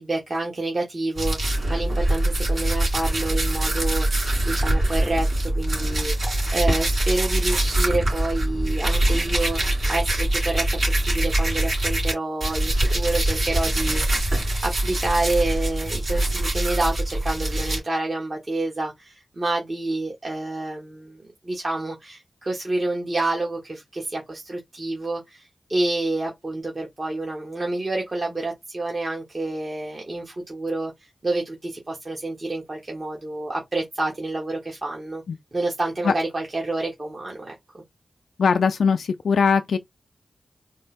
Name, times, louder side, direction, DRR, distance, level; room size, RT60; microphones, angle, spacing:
voice 1, 0.0-30.9 31.2-35.2 35.5-37.8, right 2 dB, 45° right, 1.3 m, -28 dB
sound 1, 1.2-12.1 12.4-17.8, right 1 dB, 65° right, 3.0 m, -23 dB
voice 2, 38.4-39.8, left 5 dB, 85° left, 0.3 m, -20 dB
4.2 x 2.1 x 3.4 m
cardioid pair, 55°, 0 cm